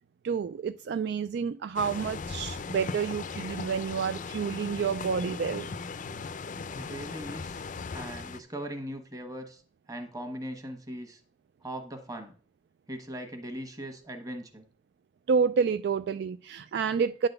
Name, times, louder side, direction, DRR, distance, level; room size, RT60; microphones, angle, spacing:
voice 1, 0.2-5.7 15.3-17.3, right 6 dB, 65° right, 0.3 m, -29 dB
sound 1, 1.7-8.4, left 4 dB, 45° left, 0.5 m, -38 dB
voice 2, 6.7-7.6 7.9-9.6 9.9-11.2 11.6-12.3 12.9-14.6, right 1 dB, 20° right, 1.3 m, -39 dB
9.6 x 4.0 x 6.7 m
head